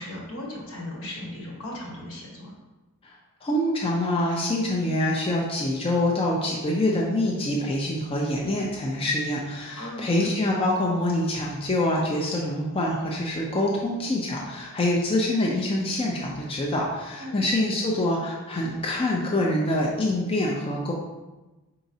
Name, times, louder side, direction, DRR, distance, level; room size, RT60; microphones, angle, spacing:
voice 1, 0.0-2.5 9.7-10.3 17.2-17.5, left 1 dB, 70° left, -2 dB, 1.2 m, -37 dB
voice 2, 3.0-20.9, left 1 dB, 25° left, -3 dB, 0.4 m, -25 dB
4.7 x 3.9 x 2.7 m, 1.1 s
head